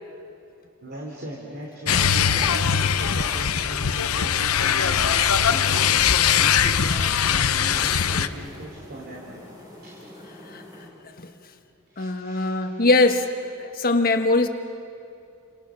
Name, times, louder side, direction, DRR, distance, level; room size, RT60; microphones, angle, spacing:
voice 1, 0.8-9.5 9.8-10.0 10.4-10.5 11.9-12.9, right 1 dB, 50° right, -1 dB, 3.1 m, -39 dB
sound 1, 1.9-8.3, left 8 dB, 85° left, 0.8 m, -21 dB
sound 2, 5.7-10.9, left 1 dB, 20° right, 7.0 m, -45 dB
voice 2, 12.0-13.3 13.6-14.5, left 2 dB, 45° left, 6 dB, 1.6 m, -21 dB
30.0 x 27.5 x 6.3 m, 2.6 s
head